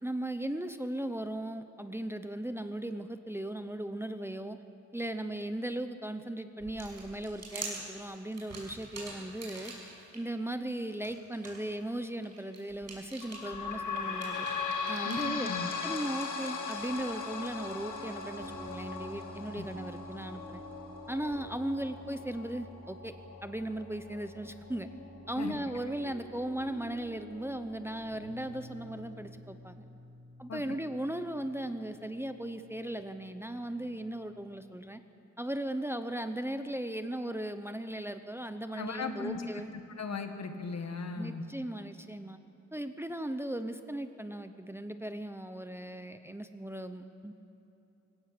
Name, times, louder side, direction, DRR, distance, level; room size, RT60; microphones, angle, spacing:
voice 1, 0.0-4.6 4.9-9.7 10.1-14.5 14.9-15.5 15.8-20.6 21.1-23.1 23.4-24.9 25.3-29.8 30.4-35.0 35.4-39.7 41.2-42.4 42.7-47.3, right 1 dB, 10° right, 8 dB, 0.8 m, -37 dB
sound 1, 6.6-10.2 10.6-15.3, right 3 dB, 60° right, 5.9 m, -46 dB
sound 2, 13.2-26.4 26.9-27.0 27.3-27.4 28.2-28.3, left 5 dB, 85° left, 2.1 m, -39 dB
voice 2, 15.0-15.7 19.5-19.7 25.4-25.6 30.5-30.8 38.7-39.5 39.7-41.4, left 4 dB, 60° left, 6 dB, 1.7 m, -37 dB
sound 3, 16.7-34.5, right 1 dB, 45° right, 4.4 m, -51 dB
24.5 x 17.0 x 6.7 m, 3.0 s
wide cardioid pair, 125°, 30 cm